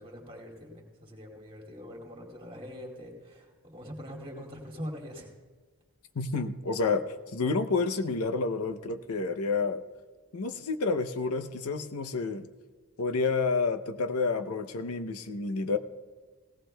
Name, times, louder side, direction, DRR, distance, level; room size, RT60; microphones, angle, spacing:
voice 1, 0.0-5.3, equal, 25° right, 0 dB, 2.3 m, -43 dB
voice 2, 6.2-7.1 7.3-9.8 10.3-12.5 13.0-15.8, left 4 dB, 80° left, 9 dB, 0.7 m, -29 dB
18.0 x 17.5 x 2.3 m, 1.4 s
head